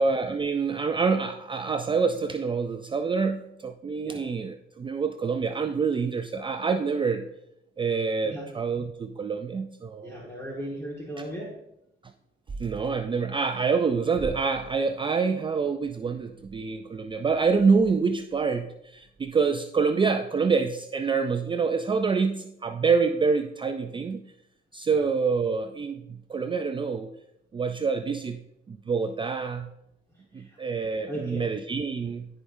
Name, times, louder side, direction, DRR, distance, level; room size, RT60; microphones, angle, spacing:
voice 1, 0.0-7.3 7.8-10.1 12.6-24.2 24.7-27.1 27.5-28.4 28.7-29.7 30.3-32.3, right 5 dB, 25° right, 7 dB, 0.4 m, -26 dB
voice 2, 10.0-11.5 24.9-25.1 31.1-31.4, right 1 dB, 15° left, -4 dB, 1.6 m, -36 dB
13.0 x 5.0 x 2.6 m, 0.84 s
cardioid pair, 90°, 20 cm